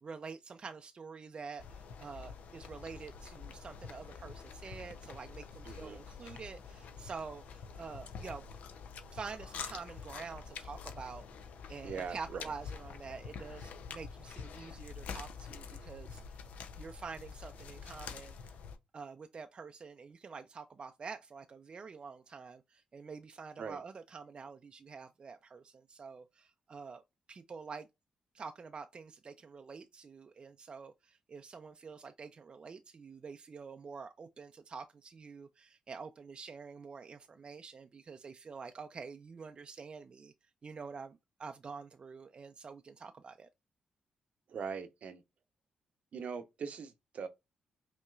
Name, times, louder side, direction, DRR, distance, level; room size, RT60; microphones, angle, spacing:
voice 1, 0.0-8.5 9.1-16.5 16.8-18.4 18.9-27.0 27.3-27.9 28.3-40.3 40.6-43.5, right 5 dB, 45° right, 0.4 m, -47 dB
sound 1, 1.6-18.8, left 6 dB, 80° left, 0.6 m, -47 dB
voice 2, 5.6-6.0 11.8-12.4 23.6-23.8 44.5-45.2 46.1-47.3, right 6 dB, 65° right, 0.7 m, -41 dB
5.3 x 2.9 x 2.4 m
cardioid pair, 70°, 2 cm